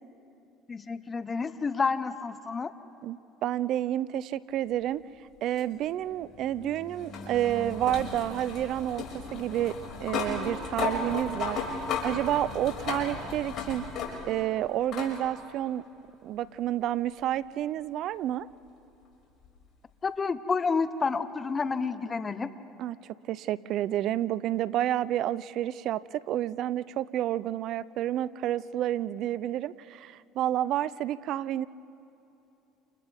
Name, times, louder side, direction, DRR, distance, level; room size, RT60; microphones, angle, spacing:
voice 1, 0.7-2.7 20.0-22.5, left 4 dB, 30° left, 12 dB, 1.0 m, -29 dB
voice 2, 3.0-5.0 5.4-9.0 9.3-9.8 10.0-11.6 12.0-13.8 14.3-15.8 16.2-18.5 22.8-23.0 23.3-31.7, right 12 dB, 60° right, 19 dB, 0.5 m, -29 dB
sound 1, 5.6-14.4 14.9-15.1 16.4-16.5 19.4-19.5, left 4 dB, 55° left, 6.0 m, -35 dB
29.0 x 28.5 x 3.6 m, 2.9 s
supercardioid pair, 90°, 0 cm